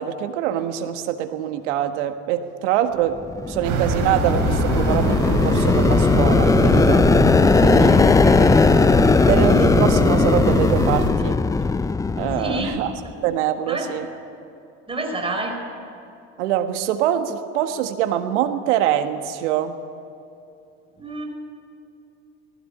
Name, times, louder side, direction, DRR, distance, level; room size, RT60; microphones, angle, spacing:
voice 1, 0.0-3.2 3.5-7.1 7.5-8.0 9.2-11.4 12.2-12.9 13.2-14.1 16.4-19.8, right 11 dB, 80° right, 8 dB, 1.6 m, -24 dB
sound 1, 3.2-13.1, left 4 dB, 10° left, 0.4 m, -18 dB
sound 2, 3.6-11.1, right 4 dB, 60° right, 4.4 m, -24 dB
voice 2, 12.4-12.7 13.7-13.9 14.9-15.5 21.0-21.3, right 2 dB, 15° right, 2 dB, 4.7 m, -28 dB
19.0 x 16.0 x 9.8 m, 2.7 s
hypercardioid pair, 80°, 36 cm